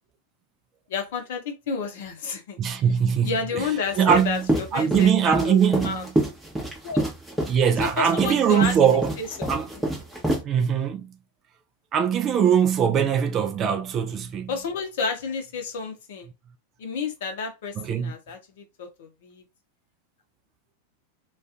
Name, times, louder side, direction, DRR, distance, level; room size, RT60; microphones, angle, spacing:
voice 1, 0.9-2.6 3.2-5.5 5.8-6.0 6.8-7.1 7.8-8.7 9.2-9.9 14.5-16.3 16.8-19.4, left 5 dB, 55° left, 0.6 m, -31 dB
voice 2, 2.6-3.7 4.0-6.1 7.5-9.1 9.5-9.7 10.4-11.1 11.9-14.5 17.8-18.1, right 8 dB, 30° right, 0.4 m, -22 dB
sound 1, 3.9-10.4, right 1 dB, 5° right, 0.8 m, -27 dB
2.4 x 2.3 x 2.4 m
figure-of-eight pair, 90°, 0 cm